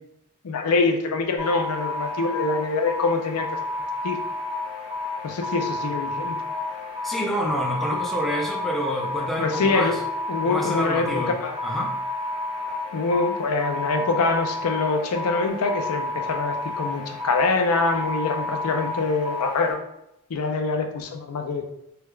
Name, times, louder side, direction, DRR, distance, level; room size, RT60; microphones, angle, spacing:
voice 1, 0.4-3.6 4.0-4.2 5.2-6.4 7.9-8.0 9.4-10.0 10.3-11.6 12.9-19.8 20.3-21.7, left 3 dB, 80° left, 4 dB, 0.5 m, -24 dB
sound 1, 1.4-19.7, left 2 dB, 55° right, 1.2 m, -31 dB
voice 2, 7.0-9.9 10.4-11.3 11.6-11.9, equal, ahead, -4 dB, 0.5 m, -27 dB
3.3 x 3.1 x 2.3 m, 0.83 s
head